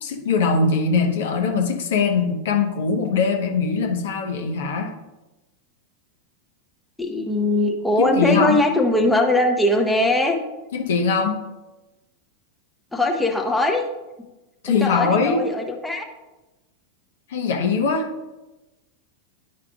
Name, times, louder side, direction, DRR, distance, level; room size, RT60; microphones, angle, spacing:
voice 1, 0.0-4.9 8.0-8.6 10.7-11.4 14.6-15.4 17.3-18.1, left 4 dB, 60° left, 3 dB, 0.9 m, -21 dB
voice 2, 7.0-10.4 12.9-13.9 14.7-16.1, left 1 dB, 5° left, 1 dB, 0.8 m, -20 dB
11.0 x 4.7 x 2.4 m, 1.1 s
figure-of-eight pair, 90°, 0 cm